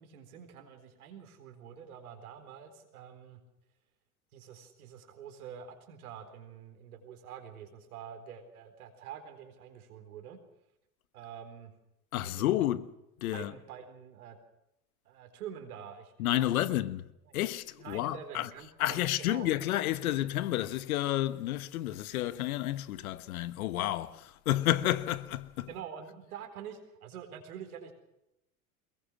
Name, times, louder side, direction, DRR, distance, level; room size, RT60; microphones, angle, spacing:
voice 1, 0.0-3.4 4.3-10.4 11.1-11.7 12.2-12.6 13.3-14.4 15.1-16.8 17.3-17.4 17.8-19.5 25.7-27.9, right 8 dB, 75° right, 4.2 m, -46 dB
voice 2, 12.1-12.9 13.2-13.5 16.2-17.0 17.3-18.5 18.8-25.7, left 14 dB, 75° left, 1.4 m, -30 dB
22.5 x 21.5 x 6.4 m
hypercardioid pair, 80°, 44 cm